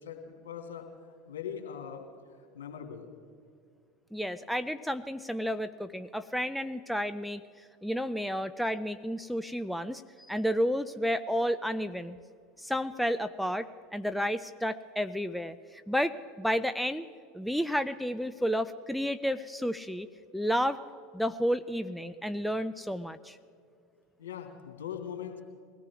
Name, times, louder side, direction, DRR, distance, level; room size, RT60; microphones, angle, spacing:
voice 1, 0.0-0.9 1.3-2.1 2.4-3.1 24.2-25.4, left 8 dB, 70° left, 2 dB, 2.7 m, -41 dB
voice 2, 4.1-7.4 7.8-10.0 10.3-12.2 12.6-17.1 17.3-20.1 20.3-20.8 21.1-23.4, equal, ahead, 10 dB, 0.6 m, -31 dB
23.5 x 17.0 x 3.6 m, 2.3 s
figure-of-eight pair, 80°, 0 cm